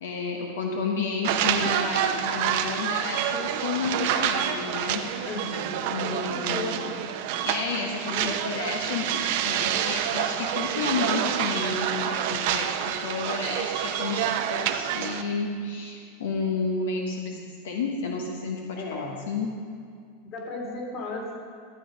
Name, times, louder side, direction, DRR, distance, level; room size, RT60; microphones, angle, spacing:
voice 1, 0.0-5.0 5.9-6.9 7.4-12.8 13.0-19.5, left 4 dB, 90° left, 1 dB, 1.2 m, -31 dB
sound 1, 1.2-15.2, right 10 dB, 65° right, 0.7 m, -28 dB
voice 2, 5.2-6.9 8.1-8.3 18.7-19.3 20.3-21.4, left 2 dB, 40° left, -1 dB, 2.7 m, -35 dB
12.5 x 7.7 x 5.2 m, 2.2 s
supercardioid pair, 130°, 0 cm